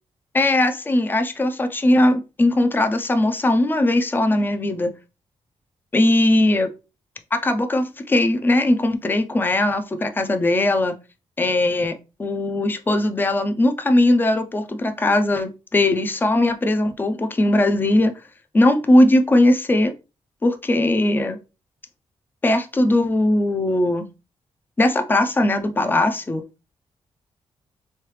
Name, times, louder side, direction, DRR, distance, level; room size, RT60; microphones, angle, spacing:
voice 1, 0.3-4.9 5.9-6.7 7.3-11.0 11.4-18.1 18.5-19.9 20.4-21.4 22.4-24.1 24.8-26.4, left 1 dB, 20° left, 8 dB, 0.5 m, -19 dB
3.7 x 3.2 x 3.1 m, 0.29 s
wide cardioid pair, 140°, 11 cm